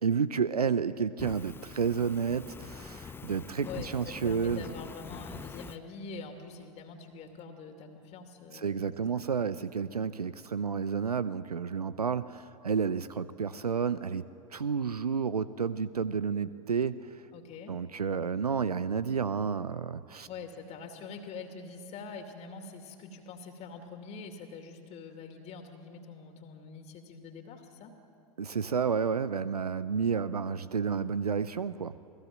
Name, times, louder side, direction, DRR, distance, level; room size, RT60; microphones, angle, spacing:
voice 1, 0.0-4.6 8.5-14.2 14.5-17.1 17.7-20.3 28.4-31.9, right 6 dB, 85° right, 15 dB, 0.6 m, -31 dB
Fire, 1.2-5.8, left 5 dB, 10° left, 0.7 m, -45 dB
voice 2, 3.6-9.2 17.3-17.8 20.2-28.0, left 4 dB, 35° left, 5 dB, 2.5 m, -45 dB
29.0 x 19.5 x 7.6 m, 2.6 s
figure-of-eight pair, 95°, 19 cm